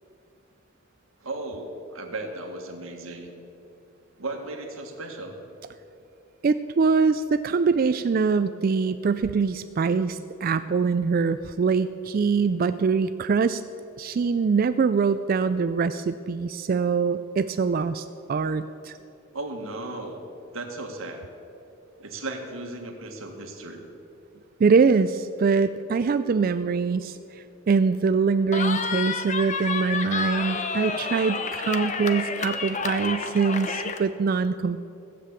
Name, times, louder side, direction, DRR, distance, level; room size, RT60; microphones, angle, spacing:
voice 1, 1.2-3.3 4.2-5.4 19.3-20.2 20.5-21.2 22.0-23.8, right 2 dB, 75° right, 3 dB, 1.7 m, -35 dB
voice 2, 6.4-13.6 14.0-18.9 24.6-34.8, right 5 dB, 45° right, 11 dB, 0.3 m, -23 dB
Cheering, 28.5-34.0, left 4 dB, 35° left, 0.7 m, -30 dB
16.0 x 7.6 x 8.3 m, 2.7 s
head